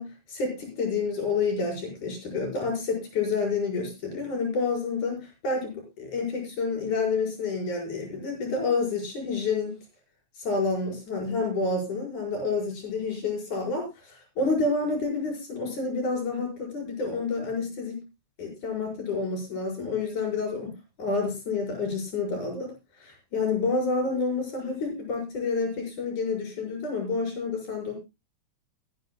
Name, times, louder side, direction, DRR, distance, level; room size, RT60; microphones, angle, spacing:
voice 1, 0.0-9.8 10.4-18.0 18.4-22.7 23.0-28.0, left 4 dB, 80° left, 1 dB, 6.5 m, -29 dB
22.5 x 9.9 x 2.2 m, 0.25 s
omnidirectional pair, 3.4 m